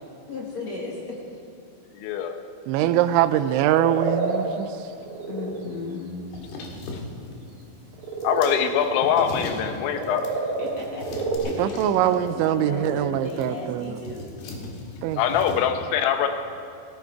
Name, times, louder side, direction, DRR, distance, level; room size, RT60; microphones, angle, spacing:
voice 1, 0.3-1.2 2.8-2.9 5.3-6.2 10.6-14.2, left 3 dB, 50° left, -3 dB, 2.4 m, -35 dB
voice 2, 1.9-2.4 8.2-10.2 15.2-16.3, left 8 dB, 90° left, 6 dB, 3.3 m, -23 dB
voice 3, 2.7-4.9 11.6-14.1 15.0-15.2, right 12 dB, 90° right, 12 dB, 3.0 m, -23 dB
sound 1, 3.1-3.2 3.5-4.5 4.9-5.6 6.4-6.5 7.9-8.6 9.6-9.7 9.9-11.4, right 3 dB, 35° right, 2.6 m, -28 dB
sound 2, 6.3-15.6, left 3 dB, 65° left, 3.5 m, -39 dB
17.0 x 15.0 x 4.7 m, 2.7 s
omnidirectional pair, 5.2 m